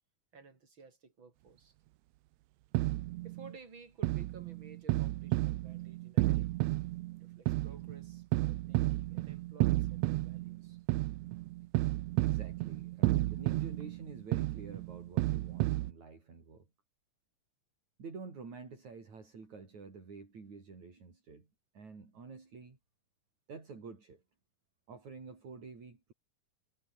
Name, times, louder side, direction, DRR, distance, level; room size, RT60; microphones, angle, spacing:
voice 1, 0.3-1.7 3.2-6.5 7.2-10.8, right 4 dB, 35° right, 4.9 m, -55 dB
sound 1, 2.7-3.5 4.0-15.9, right 19 dB, 85° right, 1.5 m, -32 dB
voice 2, 12.2-16.7 18.0-21.5 21.7-22.8 23.5-24.2 24.9-26.1, right 4 dB, 60° right, 6.6 m, -49 dB
omnidirectional pair, 3.8 m